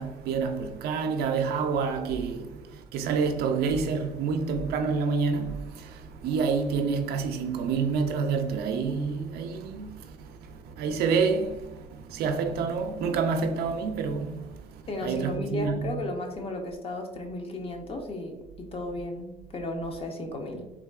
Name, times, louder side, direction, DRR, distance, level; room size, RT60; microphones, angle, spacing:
voice 1, 0.0-15.9, right 5 dB, 65° right, 0.4 m, -28 dB
sound 1, 2.1-2.4 3.7-4.0 4.5-4.8 5.4-5.8, right 5 dB, 70° left, 0.7 m, -40 dB
voice 2, 14.9-20.7, left 2 dB, 35° left, 0.6 m, -34 dB
3.5 x 2.2 x 2.2 m
supercardioid pair, 85°, 17 cm